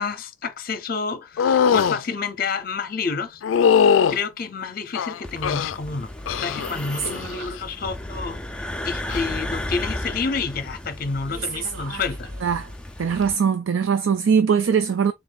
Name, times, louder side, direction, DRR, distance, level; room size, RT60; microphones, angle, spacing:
voice 1, 0.0-3.4 4.1-6.1 6.4-12.3, left 5 dB, 50° left, 0.6 m, -29 dB
sound 1, 1.4-2.0 3.4-4.2 4.9-5.8 6.3-6.7 7.0-7.5 9.0-9.2, left 7 dB, 80° left, 0.3 m, -20 dB
sound 2, 5.2-13.4, left 1 dB, 5° left, 0.4 m, -34 dB
voice 2, 11.3-12.0 12.4-12.7 13.0-15.1, right 6 dB, 80° right, 0.4 m, -22 dB
3.8 x 2.5 x 3.5 m
head